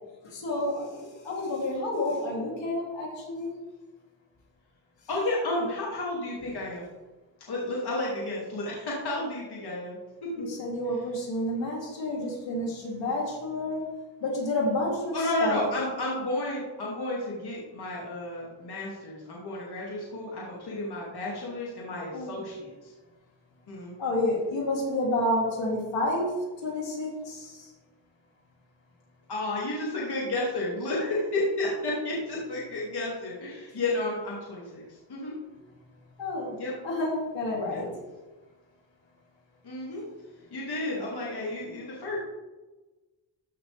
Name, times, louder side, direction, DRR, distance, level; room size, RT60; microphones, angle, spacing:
voice 1, 0.2-3.5 10.4-13.8 14.2-15.1 15.4-15.6 22.1-22.4 24.0-26.4 26.6-27.7 36.2-36.6 36.8-37.9, left 1 dB, 75° left, -3 dB, 3.3 m, -29 dB
voice 2, 5.1-6.9 7.5-10.0 15.1-22.9 23.7-23.9 29.3-35.3 36.6-36.7 37.7-37.8 39.6-40.0 40.5-42.2, left 2 dB, 60° left, -5 dB, 2.6 m, -32 dB
14.0 x 6.0 x 3.5 m, 1.2 s
cardioid pair, 90°, 44 cm